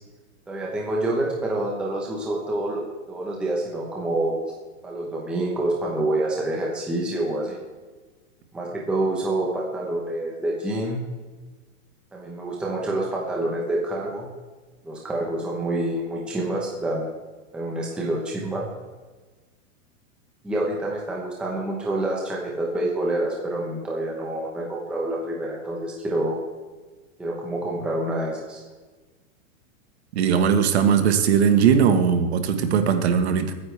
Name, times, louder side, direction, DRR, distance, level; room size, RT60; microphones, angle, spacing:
voice 1, 0.5-4.4 4.8-7.6 8.5-11.0 12.1-14.3 14.8-17.1 17.5-18.6 20.4-26.4 27.2-28.6, right 1 dB, ahead, -3 dB, 0.9 m, -27 dB
voice 2, 30.1-33.5, right 7 dB, 50° right, 8 dB, 1.4 m, -19 dB
22.0 x 9.6 x 3.4 m, 1.3 s
supercardioid pair, 180°, 42 cm